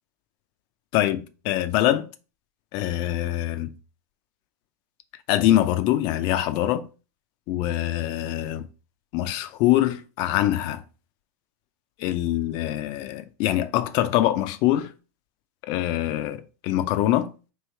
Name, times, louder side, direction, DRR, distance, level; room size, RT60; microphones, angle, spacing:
voice 1, 0.9-2.1 2.7-3.7 5.3-6.8 7.5-8.7 9.1-10.8 12.0-14.9 15.6-17.3, left 13 dB, 50° left, 0.5 m, -24 dB
3.2 x 3.0 x 4.4 m
hypercardioid pair, 110°, 9 cm